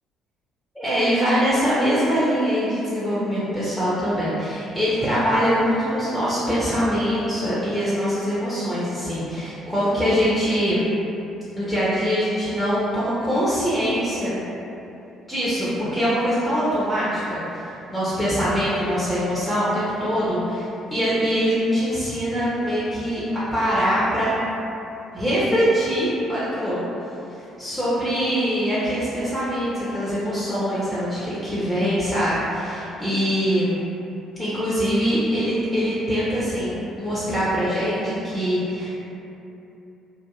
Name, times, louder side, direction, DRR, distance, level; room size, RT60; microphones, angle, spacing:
voice 1, 0.7-10.9 11.6-14.4 15.3-23.2 23.5-24.3 25.1-26.8 27.6-33.8 34.4-38.9, equal, 5° left, -11 dB, 0.7 m, -23 dB
2.8 x 2.5 x 2.3 m, 2.8 s
figure-of-eight pair, 50°, 0 cm